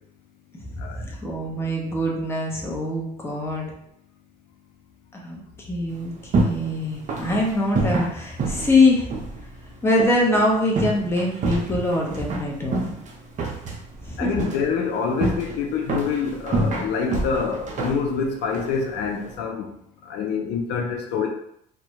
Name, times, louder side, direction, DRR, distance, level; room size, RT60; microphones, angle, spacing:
voice 1, 0.6-3.7 5.1-9.1 9.8-12.9 14.0-14.3, left 2 dB, 15° left, -2 dB, 0.6 m, -23 dB
sound 1, 5.9-19.4, right 2 dB, 45° right, 0.6 m, -29 dB
voice 2, 14.2-19.7 20.1-21.3, left 6 dB, 85° left, 1 dB, 0.5 m, -26 dB
2.2 x 2.0 x 2.8 m, 0.75 s
cardioid pair, 110°, 17 cm